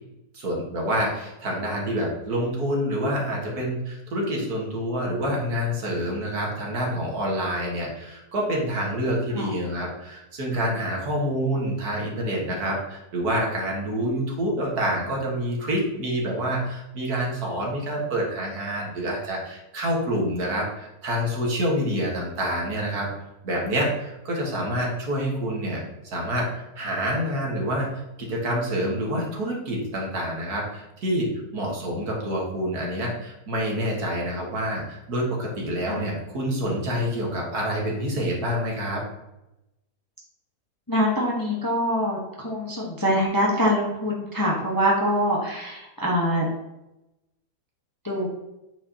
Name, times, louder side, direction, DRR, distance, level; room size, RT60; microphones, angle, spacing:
voice 1, 0.3-23.1 23.4-27.9 28.2-39.0, equal, 65° right, -2 dB, 2.0 m, -27 dB
voice 2, 40.9-46.5 48.0-48.3, equal, 15° left, -3 dB, 0.9 m, -24 dB
8.4 x 5.0 x 2.8 m, 0.93 s
omnidirectional pair, 1.8 m